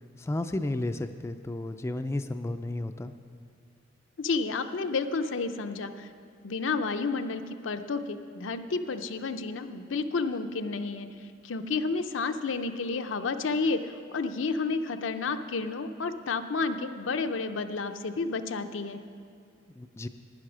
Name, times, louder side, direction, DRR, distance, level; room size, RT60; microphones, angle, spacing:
voice 1, 0.2-3.1 19.8-20.1, left 2 dB, 15° left, 8 dB, 0.3 m, -32 dB
voice 2, 4.2-6.1 6.4-11.1 11.4-19.0, left 4 dB, 85° left, 8 dB, 0.6 m, -31 dB
11.0 x 9.7 x 6.0 m, 2.4 s
head